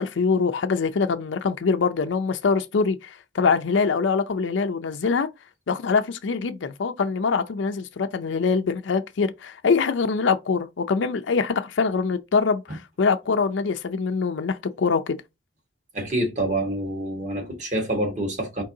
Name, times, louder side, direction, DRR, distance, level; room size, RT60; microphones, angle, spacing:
voice 1, 0.0-5.3 5.7-15.2, left 5 dB, 85° left, 0.5 m, -24 dB
voice 2, 15.9-18.6, right 1 dB, 40° right, 1.4 m, -27 dB
4.5 x 3.6 x 2.7 m
head